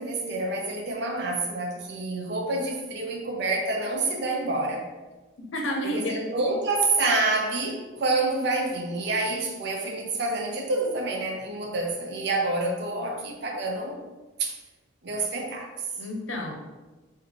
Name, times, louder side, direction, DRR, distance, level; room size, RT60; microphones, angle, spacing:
voice 1, 0.0-4.9 5.8-14.0 14.4-14.6 15.0-15.8, right 2 dB, 55° right, 0 dB, 0.6 m, -28 dB
voice 2, 5.5-6.3 16.0-16.5, left 1 dB, 75° left, 1 dB, 0.7 m, -30 dB
3.2 x 2.7 x 3.9 m, 1.2 s
head